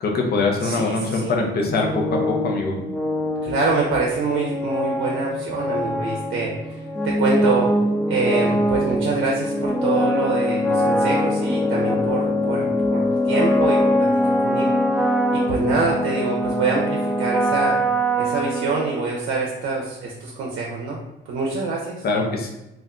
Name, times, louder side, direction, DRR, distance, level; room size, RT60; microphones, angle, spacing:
voice 1, 0.0-2.8 22.0-22.5, left 3 dB, 50° left, 1 dB, 0.7 m, -23 dB
voice 2, 0.6-1.4 3.4-7.7 8.1-14.7 15.3-17.8 18.2-21.0 21.3-22.0, right 4 dB, 75° right, -2 dB, 0.6 m, -25 dB
sound 1, 1.6-19.3, equal, 5° left, 0.4 m, -23 dB
2.4 x 2.1 x 3.6 m, 0.92 s
cardioid pair, 90°, 20 cm